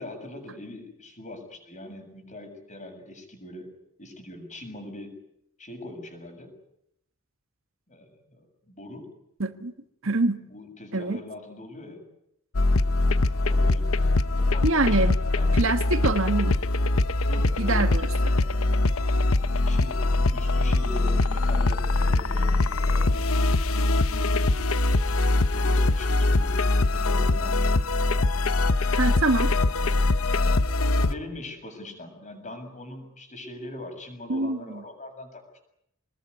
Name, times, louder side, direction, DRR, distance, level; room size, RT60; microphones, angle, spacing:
voice 1, 0.0-3.7 4.0-5.2 5.6-6.5 7.9-9.1 10.5-12.0 13.2-14.0 14.3-15.0 15.3-15.9 17.3-17.9 19.3-24.5 25.5-27.8 31.0-35.4, left 1 dB, 35° left, 7.1 m, -42 dB
voice 2, 9.4-9.7 10.0-10.4 10.9-11.2 14.6-15.1 15.5-16.6 17.6-18.3 28.9-29.5 34.3-34.6, right 3 dB, 70° right, 1.5 m, -25 dB
sound 1, 12.5-31.1, left 2 dB, 80° left, 0.9 m, -23 dB
26.0 x 20.5 x 9.6 m
head